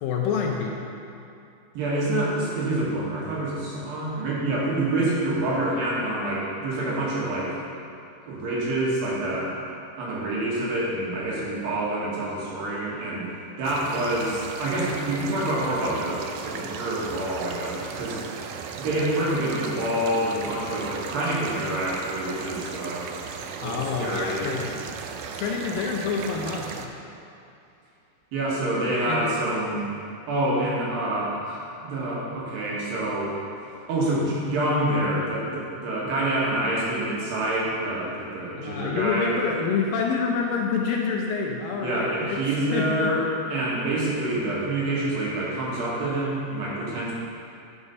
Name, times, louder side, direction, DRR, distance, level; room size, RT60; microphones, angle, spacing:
voice 1, 0.0-0.9 23.6-24.7 25.1-26.9 29.1-29.3 38.6-43.1, left 5 dB, 80° left, 0 dB, 2.2 m, -27 dB
voice 2, 1.7-7.6 8.2-9.6 10.0-13.3 13.6-18.3 18.8-23.1 23.6-24.6 25.2-25.3 28.3-29.9 30.3-33.4 33.9-39.4 41.8-43.2 43.5-47.1, right 1 dB, 70° right, -6 dB, 3.2 m, -27 dB
sound 1, 13.6-26.9, right 6 dB, 85° right, 1.9 m, -36 dB
9.8 x 5.0 x 5.3 m, 2.6 s
omnidirectional pair, 4.4 m